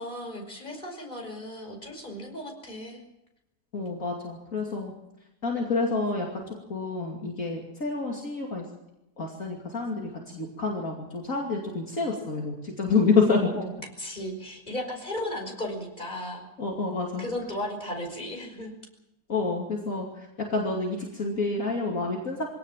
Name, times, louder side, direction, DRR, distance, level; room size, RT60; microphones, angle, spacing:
voice 1, 0.0-3.0 13.5-13.7 14.0-16.5 17.2-18.7, left 1 dB, 25° left, 1 dB, 5.5 m, -35 dB
voice 2, 3.7-4.9 5.4-6.4 6.7-8.6 9.2-13.4 16.6-17.3 19.3-22.5, left 4 dB, 55° left, -1 dB, 3.1 m, -28 dB
23.5 x 17.5 x 7.5 m, 0.87 s
omnidirectional pair, 1.7 m